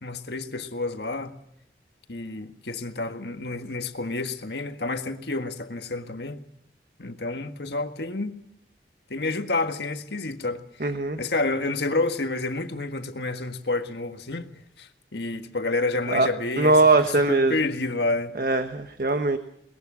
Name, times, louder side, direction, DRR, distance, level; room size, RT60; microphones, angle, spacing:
voice 1, 0.0-1.3 2.1-6.4 7.0-8.4 9.1-10.6 11.2-18.3, left 2 dB, 75° left, 1.6 m, -29 dB
voice 2, 10.8-11.2 16.1-16.3 16.6-17.6 18.4-19.4, right 2 dB, 50° right, 1.2 m, -21 dB
23.0 x 21.0 x 6.3 m
head